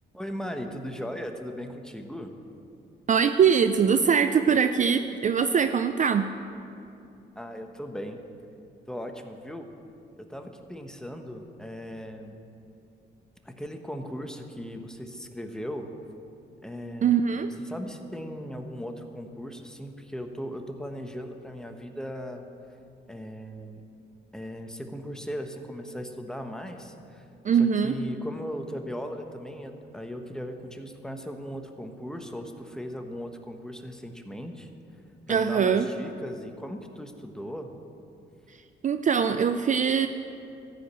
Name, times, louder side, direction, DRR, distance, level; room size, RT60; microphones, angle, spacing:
voice 1, 0.1-2.3 7.3-8.2 8.9-9.7 10.2-12.4 13.4-15.9 16.6-17.3 17.6-22.4 23.1-23.8 24.3-27.2 27.6-34.7 35.3-37.7, equal, 5° left, 5 dB, 1.1 m, -38 dB
voice 2, 3.1-6.3 17.0-17.5 27.4-28.0 35.3-35.9 38.8-40.1, right 7 dB, 40° right, 9 dB, 0.4 m, -22 dB
14.5 x 5.1 x 8.6 m, 2.7 s
cardioid pair, 90°, 20 cm